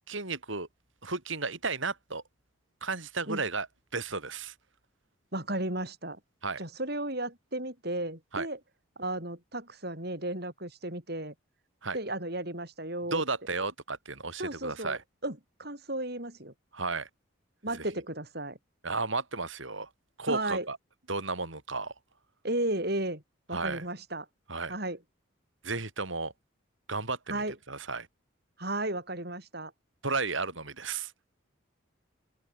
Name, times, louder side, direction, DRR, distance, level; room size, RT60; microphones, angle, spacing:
voice 1, 0.1-0.7 1.0-2.2 2.8-3.7 3.9-4.5 6.4-6.6 8.3-8.5 11.8-12.0 13.1-15.0 16.7-17.1 18.8-19.9 20.2-20.8 21.1-21.9 23.5-23.8 24.5-24.7 25.6-26.3 26.9-28.1 30.0-31.1, right 3 dB, 70° right, 4.6 m, -33 dB
voice 2, 5.3-6.2 6.6-8.6 9.0-11.3 11.9-13.2 14.4-16.5 17.6-18.6 20.3-20.7 22.4-23.2 23.5-24.3 24.7-25.0 27.3-27.6 28.6-29.7, right 1 dB, 50° right, 6.8 m, -34 dB
open air
head